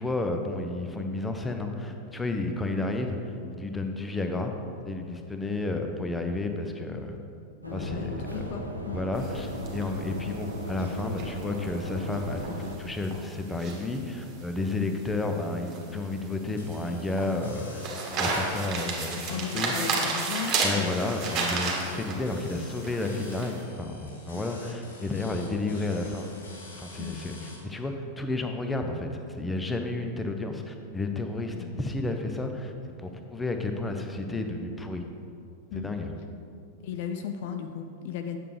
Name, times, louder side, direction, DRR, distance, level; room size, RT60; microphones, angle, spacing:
voice 1, 0.0-4.5 4.8-7.2 7.7-17.9 18.2-19.7 20.6-26.3 26.8-32.7 33.0-35.0 35.7-36.1, left 2 dB, 10° left, 5 dB, 0.6 m, -31 dB
voice 2, 7.6-9.0 9.9-10.0 14.7-15.0 18.2-18.4 19.3-20.9 24.3-24.5 25.4-25.8 27.0-27.2 31.5-31.8 35.7-35.9 36.8-38.4, left 8 dB, 50° left, 6 dB, 0.4 m, -36 dB
sound 1, 7.6-12.8, equal, 90° right, 0.8 m, -37 dB
sound 2, 9.2-23.6, right 3 dB, 35° right, 1.4 m, -33 dB
sound 3, 16.6-27.6, left 2 dB, 70° left, 1.3 m, -48 dB
8.7 x 6.6 x 3.3 m, 2.4 s
figure-of-eight pair, 90°, 0 cm